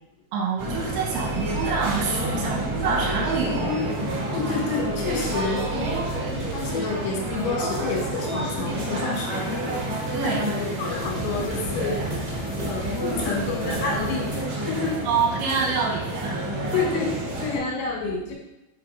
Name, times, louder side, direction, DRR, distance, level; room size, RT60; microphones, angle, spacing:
voice 1, 0.3-3.7 5.7-6.0 10.1-10.6 15.0-16.7, right 5 dB, 75° right, -2 dB, 3.0 m, -27 dB
sound 1, 0.6-17.6, right 1 dB, 55° right, 2.1 m, -29 dB
voice 2, 4.3-5.7 6.1-6.3 6.5-9.6 10.2-15.0 16.7-17.1 17.4-18.3, left 4 dB, 90° left, -1 dB, 3.9 m, -29 dB
sound 2, 9.2-14.4, right 1 dB, 70° left, 1.6 m, -37 dB
7.4 x 2.8 x 4.5 m, 0.92 s
omnidirectional pair, 5.7 m